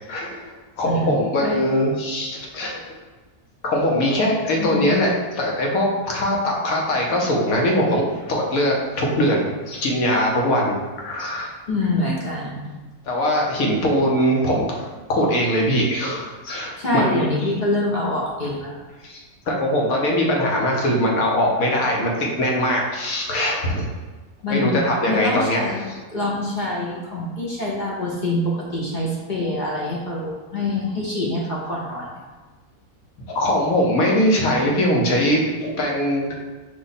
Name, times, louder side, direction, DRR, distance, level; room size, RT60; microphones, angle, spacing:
voice 1, 0.1-0.4 0.8-2.8 3.6-11.5 13.0-17.5 19.0-23.9 24.5-25.7 33.3-36.4, equal, 65° left, -1 dB, 1.2 m, -21 dB
voice 2, 4.6-5.1 11.7-12.7 16.8-18.7 24.4-24.8 25.1-25.8 26.1-32.1, left 2 dB, 50° left, -4 dB, 0.5 m, -25 dB
5.1 x 2.3 x 4.0 m, 1.3 s
omnidirectional pair, 1.6 m